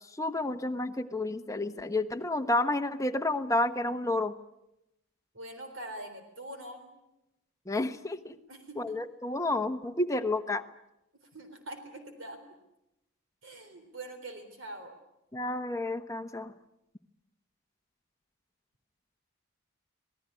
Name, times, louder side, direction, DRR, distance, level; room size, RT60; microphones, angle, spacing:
voice 1, 0.2-4.3 7.7-8.4 8.8-10.6 15.3-16.5, left 2 dB, 15° left, 7 dB, 1.1 m, -30 dB
voice 2, 5.3-6.9 8.5-9.0 11.3-12.4 13.4-15.0, right 1 dB, 60° right, 6 dB, 3.8 m, -44 dB
26.5 x 18.5 x 9.8 m, 0.90 s
head